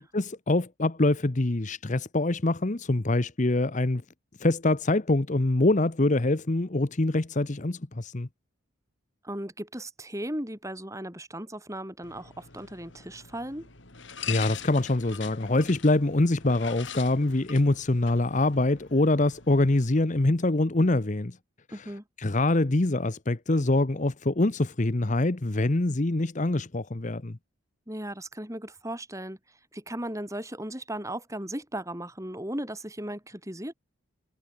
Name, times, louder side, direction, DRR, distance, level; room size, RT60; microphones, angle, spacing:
voice 1, 0.0-4.0 4.4-8.3 14.2-21.4 22.2-27.4, left 2 dB, 35° left, 0.9 m, -24 dB
voice 2, 9.2-13.7 21.7-22.0 27.9-29.4 29.7-33.7, right 1 dB, 15° right, 7.6 m, -36 dB
sound 1, 12.0-20.0, left 8 dB, 60° left, 3.9 m, -43 dB
head